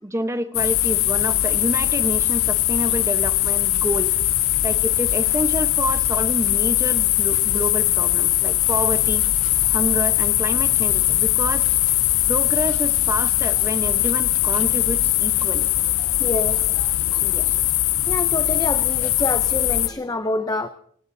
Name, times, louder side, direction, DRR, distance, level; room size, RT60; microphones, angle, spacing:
voice 1, 0.0-4.2 4.6-9.2 9.7-12.0 12.3-15.7 17.2-17.5, right 1 dB, 15° right, 8 dB, 0.9 m, -28 dB
sound 1, 0.5-19.9, left 14 dB, 60° left, 0.6 m, -20 dB
voice 2, 16.2-17.2 18.1-20.7, left 2 dB, 15° left, 9 dB, 0.6 m, -27 dB
28.5 x 17.5 x 2.7 m, 0.64 s
head